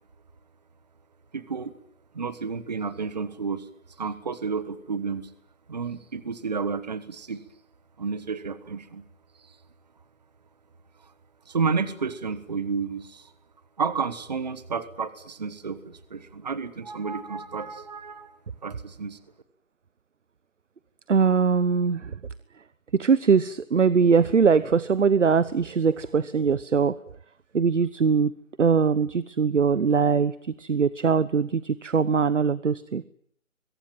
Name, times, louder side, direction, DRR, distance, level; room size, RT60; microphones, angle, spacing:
voice 1, 1.3-1.8 2.1-3.7 4.0-5.3 5.7-7.4 8.0-9.0 9.4-9.6 11.0-11.1 11.5-13.3 13.8-19.2, right 5 dB, 30° right, 14 dB, 1.3 m, -31 dB
voice 2, 21.1-22.1 23.0-27.0 27.5-28.3 28.6-30.3 30.6-33.0, right 5 dB, 65° right, 17 dB, 1.1 m, -21 dB
26.0 x 23.0 x 9.1 m, 0.67 s
figure-of-eight pair, 170°, 40 cm